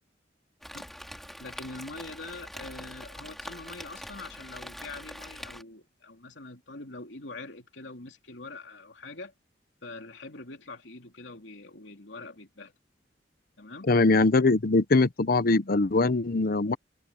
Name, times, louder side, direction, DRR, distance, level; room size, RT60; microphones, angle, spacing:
Rain, 0.6-5.6, equal, ahead, 3.5 m, -43 dB
voice 1, 1.4-9.3 9.8-12.7 13.6-13.9, left 3 dB, 85° left, 3.1 m, -44 dB
voice 2, 13.9-16.8, left 3 dB, 55° left, 0.8 m, -22 dB
head